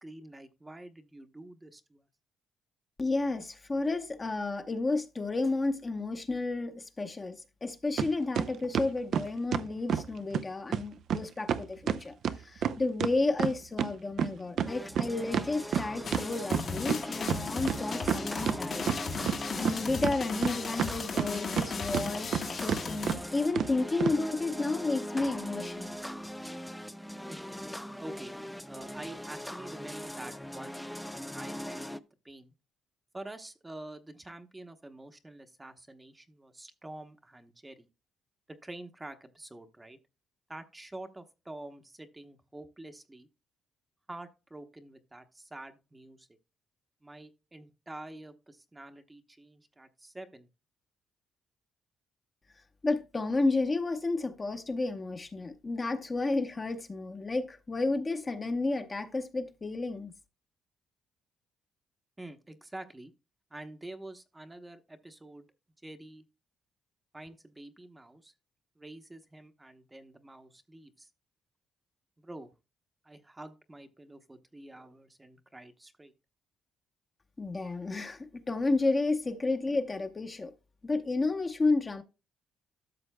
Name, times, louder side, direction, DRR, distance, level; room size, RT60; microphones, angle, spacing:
voice 1, 0.0-2.0 27.3-27.5 28.0-28.3 28.7-31.9 32.2-32.5 33.1-37.9 38.5-40.0 40.5-43.3 44.1-46.3 47.0-50.5 62.2-63.1 63.5-65.5 65.8-66.2 67.1-68.3 68.8-71.1 72.2-72.5 73.0-76.1, right 2 dB, 15° right, 0.9 m, -47 dB
voice 2, 3.0-18.9 19.5-26.0 52.8-60.1 77.4-80.5 80.8-82.0, left 3 dB, 25° left, 0.9 m, -31 dB
sound 1, 8.0-8.1 8.4-10.1 10.3-10.4 10.7-10.8 11.1-11.2 11.5-13.9 14.2-17.0 17.3-17.4 17.7-18.6 18.9-19.8 20.0-21.7 21.9-22.4 22.7-22.8 23.1-23.2 23.6-23.7 24.0-24.2, right 8 dB, 70° right, 0.5 m, -29 dB
sound 2, 14.7-32.0, equal, 5° left, 0.5 m, -41 dB
sound 3, 16.0-23.1, left 4 dB, 55° left, 1.3 m, -37 dB
12.5 x 6.7 x 2.2 m
cardioid pair, 90°, 0 cm